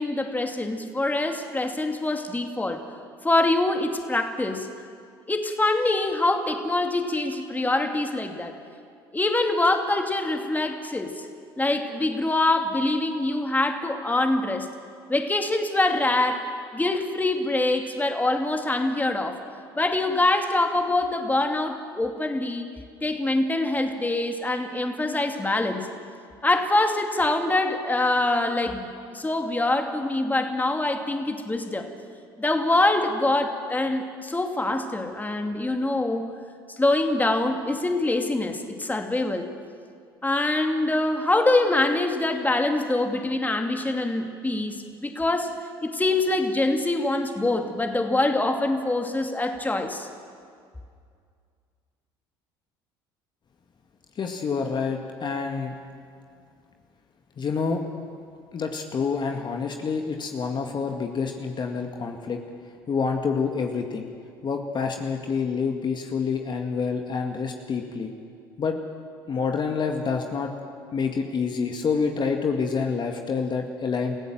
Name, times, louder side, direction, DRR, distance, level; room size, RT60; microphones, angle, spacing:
voice 1, 0.0-2.8 3.2-4.7 5.3-8.6 9.1-11.3 11.6-14.7 15.1-16.5 16.7-19.4 19.8-22.7 23.0-25.9 26.4-28.9 29.1-31.9 32.4-36.3 36.8-39.5 40.2-45.5 45.8-50.1, left 2 dB, 15° left, 4 dB, 2.5 m, -24 dB
voice 2, 54.2-55.7 57.4-57.8 58.5-62.4 62.9-64.1 64.4-68.1 68.6-68.8 69.3-70.5 70.9-74.2, left 5 dB, 40° left, 3 dB, 2.1 m, -27 dB
28.0 x 16.0 x 7.8 m, 2.2 s
hypercardioid pair, 65°, 12 cm